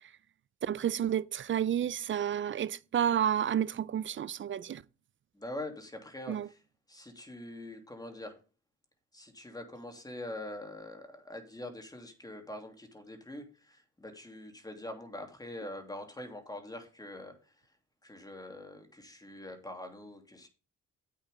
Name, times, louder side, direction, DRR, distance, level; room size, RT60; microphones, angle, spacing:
voice 1, 0.6-4.8 6.3-6.5, right 9 dB, 40° right, 0.5 m, -30 dB
voice 2, 5.3-6.6 6.9-8.4 9.1-17.5 18.0-20.5, left 1 dB, 10° left, 2.8 m, -44 dB
10.0 x 8.1 x 3.6 m
cardioid pair, 90°, 30 cm